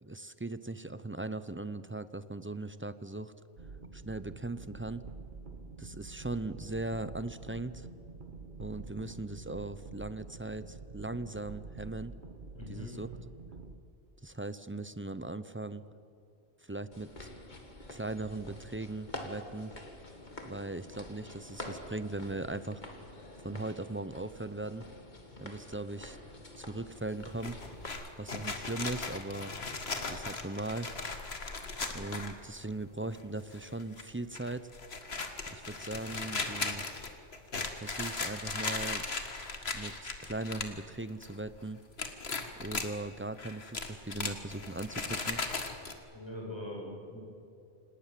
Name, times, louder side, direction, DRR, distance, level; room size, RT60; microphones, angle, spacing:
voice 1, 0.0-3.3 3.9-5.0 5.8-7.9 8.6-12.1 12.7-13.1 14.2-15.8 16.6-17.3 17.9-19.7 20.4-22.8 23.4-24.9 25.4-26.2 26.6-27.6 28.2-29.5 30.0-30.9 31.9-34.7 35.5-36.8 37.8-39.0 39.7-41.8 42.6-45.4, right 2 dB, 15° right, 14 dB, 0.5 m, -39 dB
sound 1, 3.6-13.8, right 4 dB, 45° right, 1.3 m, -47 dB
voice 2, 12.5-12.9 46.1-47.2, left 1 dB, 20° left, -2 dB, 7.2 m, -42 dB
sound 2, 16.9-27.9, left 1 dB, 40° left, 2.5 m, -47 dB
sound 3, 27.1-32.7 33.1-33.2 33.5-34.0 34.3-40.8 41.1-41.6 42.0-42.9 43.4-45.9, left 3 dB, 60° left, 2.0 m, -38 dB
28.0 x 19.0 x 7.6 m, 2.5 s
omnidirectional pair, 1.2 m